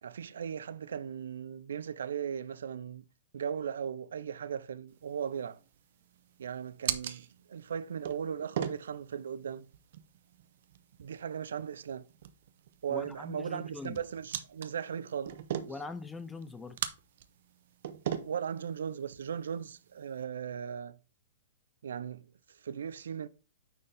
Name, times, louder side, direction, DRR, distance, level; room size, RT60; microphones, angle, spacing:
voice 1, 0.0-3.1 3.3-5.6 6.4-9.7 11.0-12.1 12.8-15.4 18.2-21.0 21.8-23.3, right 8 dB, 90° right, 0.4 m, -37 dB
sound 1, 4.9-20.2, right 10 dB, 50° right, 0.6 m, -42 dB
voice 2, 12.9-14.0 15.7-16.8, left 3 dB, 5° left, 0.4 m, -42 dB
9.3 x 4.4 x 3.3 m
hypercardioid pair, 170°, 0 cm